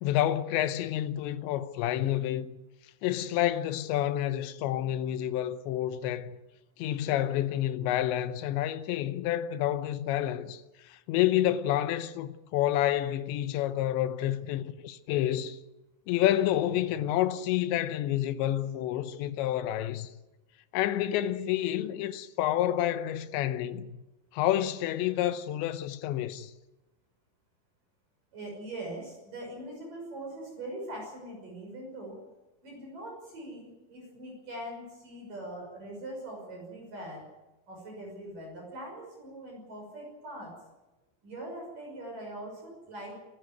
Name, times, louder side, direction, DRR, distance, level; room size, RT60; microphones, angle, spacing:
voice 1, 0.0-2.5 3.0-6.4 6.8-15.6 16.1-20.1 20.7-24.0 24.3-26.5, left 12 dB, 75° left, 2.8 m, -29 dB
voice 2, 28.3-32.2 32.6-37.3 37.7-40.6 41.2-43.2, right 1 dB, 40° right, 7.2 m, -42 dB
27.5 x 13.0 x 9.4 m
omnidirectional pair, 6.0 m